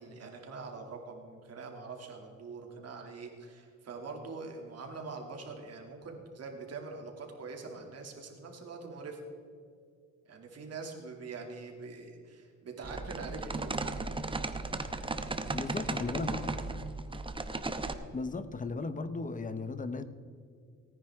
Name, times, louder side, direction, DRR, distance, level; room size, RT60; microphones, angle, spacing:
voice 1, 0.0-9.2 10.3-13.8, right 4 dB, 55° right, 2 dB, 2.7 m, -44 dB
sound 1, 12.8-17.9, right 3 dB, 15° right, 0.9 m, -36 dB
voice 2, 15.5-16.6 18.1-20.0, left 3 dB, 25° left, 12 dB, 0.9 m, -36 dB
18.0 x 10.0 x 3.6 m, 2.3 s
cardioid pair, 90°, 30 cm